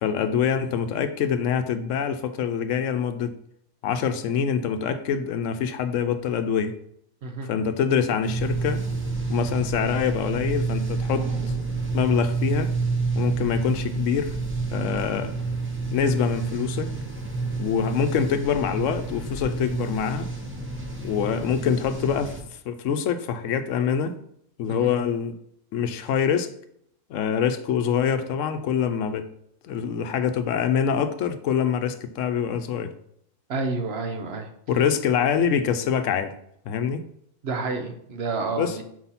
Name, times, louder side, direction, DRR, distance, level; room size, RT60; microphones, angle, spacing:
voice 1, 0.0-3.3 3.8-6.7 7.5-8.8 9.3-11.5 11.9-12.7 13.1-14.4 14.7-15.3 15.9-16.9 17.6-20.3 21.0-22.4 22.6-24.2 24.6-25.4 25.7-26.5 27.1-29.3 29.6-32.9 34.7-36.3 36.7-37.1 38.6-38.8, left 7 dB, 80° left, 10 dB, 0.9 m, -25 dB
sound 1, 8.2-22.4, right 3 dB, 10° right, 0.7 m, -29 dB
voice 2, 33.5-34.5 37.4-38.8, right 3 dB, 60° right, 5 dB, 0.9 m, -29 dB
4.7 x 4.1 x 5.6 m, 0.71 s
omnidirectional pair, 1.3 m